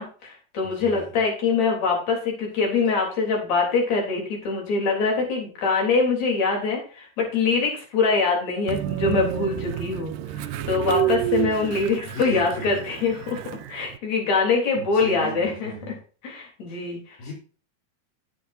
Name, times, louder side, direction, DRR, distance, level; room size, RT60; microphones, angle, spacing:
voice 1, 0.0-13.4 13.7-15.9 16.2-17.2, left 4 dB, 55° left, 0 dB, 4.8 m, -24 dB
voice 2, 0.6-1.1 12.0-12.9 14.8-16.0 17.2-17.3, left 1 dB, 85° left, -4 dB, 5.6 m, -35 dB
Train, 8.7-14.0, right 13 dB, 85° right, 2.3 m, -29 dB
14.0 x 8.4 x 2.7 m, 0.39 s
omnidirectional pair, 3.9 m